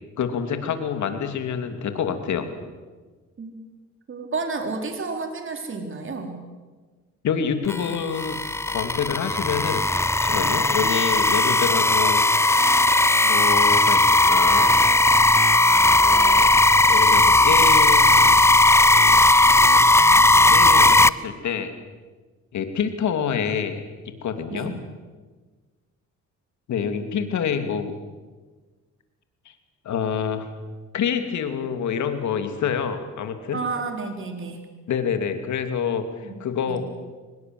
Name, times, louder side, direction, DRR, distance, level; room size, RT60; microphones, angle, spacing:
voice 1, 0.2-2.5 7.2-8.4 8.7-9.9 10.2-12.5 13.2-14.7 16.0-16.5 16.9-18.1 20.5-21.7 22.5-23.8 24.2-24.7 26.7-27.9 29.4-29.5 29.8-30.5 30.9-33.6 34.9-36.8, left 7 dB, 70° left, 7 dB, 2.9 m, -27 dB
voice 2, 4.1-6.4 24.5-24.7 33.5-34.6 36.2-36.3 36.7-36.8, right 4 dB, 40° right, 4 dB, 4.1 m, -31 dB
sound 1, 7.7-21.1, left 2 dB, 10° left, 0.6 m, -17 dB
23.5 x 20.5 x 7.9 m, 1.4 s
cardioid pair, 90°, 30 cm